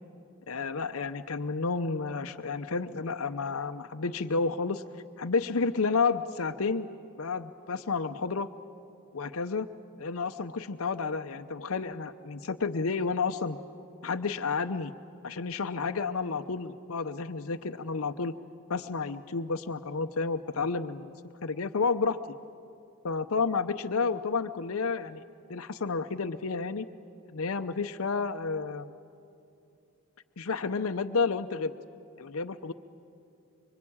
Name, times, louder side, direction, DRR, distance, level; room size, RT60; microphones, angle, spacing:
voice 1, 0.5-4.8 5.2-6.9 7.2-8.5 9.1-9.7 10.0-13.6 14.0-14.9 15.2-18.3 18.7-21.1 21.4-22.2 23.0-25.2 25.5-26.9 27.3-28.9 30.4-31.7 32.2-32.7, left 4 dB, 75° left, 8 dB, 0.7 m, -31 dB
25.0 x 24.5 x 8.7 m, 2.7 s
head